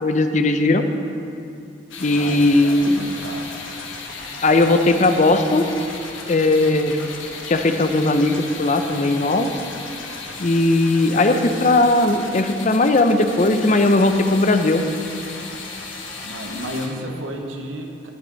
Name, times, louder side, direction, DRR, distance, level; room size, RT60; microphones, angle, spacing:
voice 1, 0.0-0.8 2.0-3.1 4.4-5.7 6.3-7.0 7.5-9.5 10.4-14.8, left 2 dB, 40° left, 7 dB, 0.6 m, -18 dB
sound 1, 1.9-16.9, left 3 dB, 80° left, 1.3 m, -35 dB
voice 2, 2.1-3.6 16.2-18.1, equal, 85° right, 2 dB, 1.1 m, -32 dB
18.0 x 6.7 x 4.0 m, 2.5 s
head